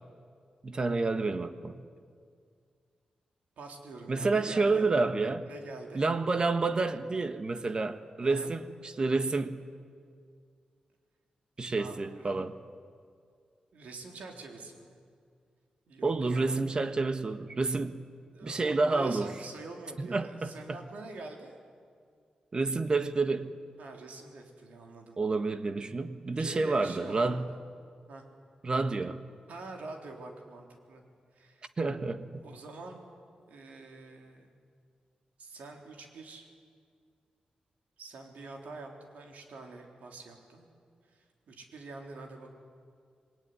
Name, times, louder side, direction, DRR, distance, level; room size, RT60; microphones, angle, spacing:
voice 1, 0.6-1.8 4.1-5.5 5.9-9.7 11.6-12.6 16.0-18.1 18.4-19.3 20.0-20.8 22.5-23.6 25.2-27.5 28.6-29.2 31.8-32.4, right 3 dB, 35° right, 10 dB, 1.4 m, -29 dB
voice 2, 3.6-4.9 5.4-6.0 8.2-8.6 11.8-12.3 13.7-15.0 15.9-16.6 18.3-21.5 23.8-25.2 26.3-27.6 28.1-28.2 29.5-31.0 31.3-31.7 32.4-33.0 33.4-34.5 35.4-36.5 38.0-40.7 41.1-42.5, right 3 dB, 85° right, 2 dB, 4.0 m, -45 dB
27.0 x 21.0 x 9.9 m, 2.2 s
wide cardioid pair, 115°, 2 cm